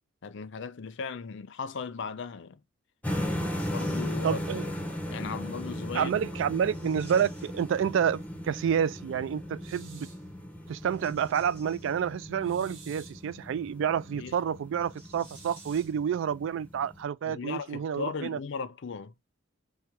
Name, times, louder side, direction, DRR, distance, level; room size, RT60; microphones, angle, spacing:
voice 1, 0.2-2.6 3.7-4.6 5.1-6.1 14.1-14.4 17.3-19.1, left 5 dB, 65° left, 0.5 m, -37 dB
sound 1, 3.0-17.0, left 1 dB, 10° left, 0.8 m, -37 dB
sound 2, 3.5-4.6 6.6-8.4 10.7-12.4 14.7-16.4 16.7-16.8 17.8-17.9, right 1 dB, 10° right, 2.6 m, -56 dB
voice 2, 4.2-4.7 5.9-10.1 10.7-18.4, right 8 dB, 65° right, 0.3 m, -29 dB
sound 3, 9.6-10.3 12.4-13.3 15.2-16.0, right 5 dB, 80° right, 1.2 m, -52 dB
4.6 x 2.2 x 2.8 m
head